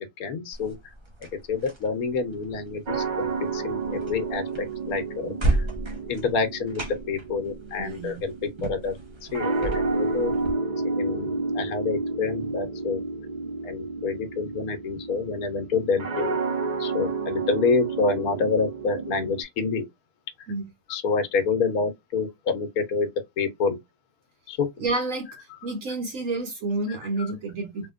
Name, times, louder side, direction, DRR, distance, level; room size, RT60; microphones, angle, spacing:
voice 1, 0.2-0.8 1.5-5.3 5.6-5.7 6.1-8.3 8.6-9.0 9.3-10.3 10.8-13.0 13.6-16.4 16.8-19.8 20.9-23.1 23.4-23.8 24.5-24.7, left 4 dB, 70° left, 1.3 m, -27 dB
sound 1, 0.5-10.5, right 1 dB, 30° right, 0.6 m, -34 dB
sound 2, 2.9-19.4, right 3 dB, 85° right, 0.3 m, -31 dB
voice 2, 7.8-8.2 20.5-20.7 24.8-25.3 25.6-27.9, right 2 dB, 60° right, 1.2 m, -29 dB
3.6 x 2.8 x 2.5 m
omnidirectional pair, 1.6 m